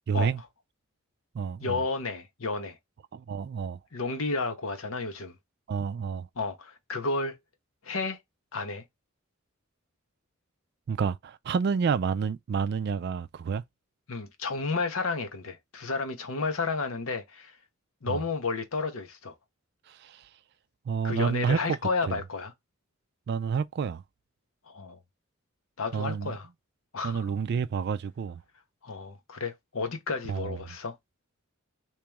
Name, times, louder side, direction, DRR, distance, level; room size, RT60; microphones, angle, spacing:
voice 1, 0.1-0.4 1.3-1.8 3.1-3.8 5.7-6.3 10.9-13.6 18.1-18.2 19.9-20.3 20.9-21.8 22.1-22.2 23.3-24.0 25.9-26.3 27.0-28.4 30.3-30.6, right 6 dB, 50° right, 0.3 m, -29 dB
voice 2, 1.6-2.8 3.9-5.3 6.4-7.4 7.8-8.2 8.5-8.8 14.1-17.6 18.0-19.3 21.0-22.5 24.7-25.0 25.8-26.5 26.9-27.2 28.8-31.0, left 4 dB, 75° left, 0.9 m, -32 dB
3.0 x 2.9 x 3.5 m
head